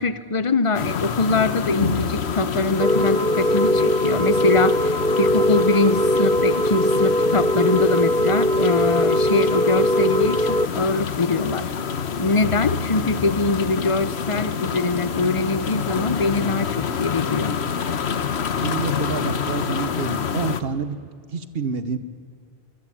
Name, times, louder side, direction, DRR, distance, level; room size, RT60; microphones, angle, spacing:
voice 1, 0.0-4.8 5.2-11.7 12.2-17.6, left 3 dB, 30° left, 15 dB, 0.9 m, -23 dB
sound 1, 0.7-20.6, left 7 dB, 90° left, 1.3 m, -27 dB
sound 2, 2.8-10.7, equal, 5° left, 0.3 m, -20 dB
voice 2, 18.6-21.0 21.3-22.0, right 5 dB, 65° right, 13 dB, 1.4 m, -28 dB
25.0 x 24.0 x 8.7 m, 2.2 s
omnidirectional pair, 1.1 m